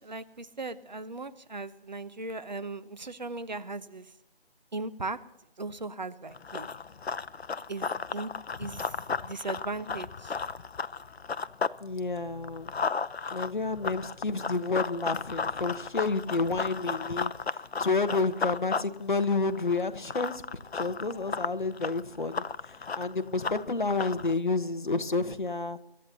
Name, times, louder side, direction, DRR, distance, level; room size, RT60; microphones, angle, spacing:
voice 1, 0.0-4.1 4.7-5.2 5.6-6.7 7.7-8.3 8.6-8.9 9.2-10.3, right 3 dB, 45° right, 13 dB, 0.9 m, -38 dB
Run, 6.3-11.8 12.1-24.3, left 5 dB, 85° left, 0.6 m, -34 dB
voice 2, 11.8-12.7 13.3-20.4 20.7-25.8, left 3 dB, 50° left, 10 dB, 1.1 m, -30 dB
25.5 x 13.0 x 2.8 m, 0.83 s
figure-of-eight pair, 165°, 31 cm